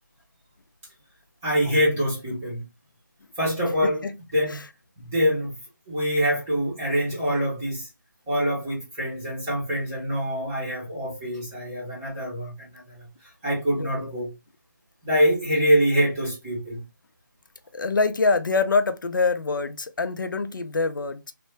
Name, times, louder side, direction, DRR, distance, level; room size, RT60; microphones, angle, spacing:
voice 1, 1.4-2.6 3.4-4.0 4.3-4.6 5.0-5.5 5.9-7.9 8.3-14.3 15.0-16.8, equal, 5° right, 0.7 m, -25 dB
voice 2, 13.8-14.1 17.7-21.3, left 4 dB, 75° left, 0.5 m, -25 dB
3.3 x 2.1 x 3.0 m
hypercardioid pair, 175°, 11 cm